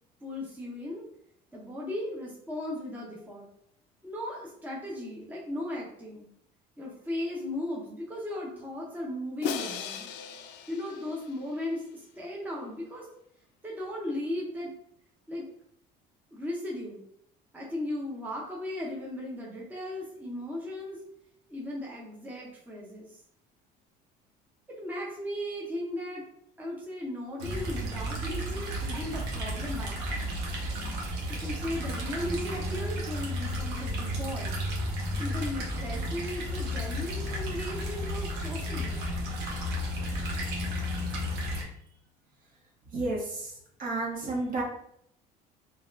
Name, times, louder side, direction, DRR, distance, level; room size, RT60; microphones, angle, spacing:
voice 1, 0.2-1.1 1.5-3.5 4.0-6.3 6.8-10.1 10.7-13.1 13.6-14.7 15.3-15.5 16.3-17.0 17.5-21.0 21.5-23.2 24.8-26.3 26.6-30.3 31.3-34.5 35.2-39.1, left 1 dB, 10° right, -4 dB, 0.7 m, -36 dB
Crash cymbal, 9.4-11.6, left 6 dB, 75° left, 0.4 m, -37 dB
sound 1, 27.4-41.6, equal, 80° right, 1.0 m, -33 dB
voice 2, 42.9-43.5 43.8-44.6, right 2 dB, 55° right, -4 dB, 1.4 m, -31 dB
4.0 x 2.4 x 2.5 m, 0.71 s
cardioid pair, 110°, 18 cm